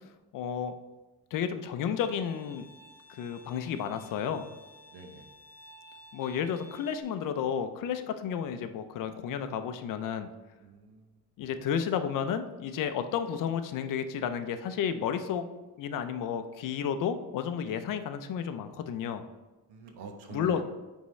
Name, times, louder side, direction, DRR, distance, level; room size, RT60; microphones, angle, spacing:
voice 1, 0.3-0.7 1.3-2.7 3.1-4.4 6.1-10.3 11.4-15.4 15.8-19.2 20.3-20.6, left 8 dB, 55° left, 9 dB, 0.5 m, -32 dB
Bowed string instrument, 2.0-7.0, equal, 45° right, 1.3 m, -54 dB
voice 2, 4.9-5.3 10.6-11.2 19.7-20.6, right 4 dB, 80° right, 4 dB, 1.0 m, -45 dB
9.5 x 3.6 x 3.2 m, 1.2 s
cardioid pair, 180°, 39 cm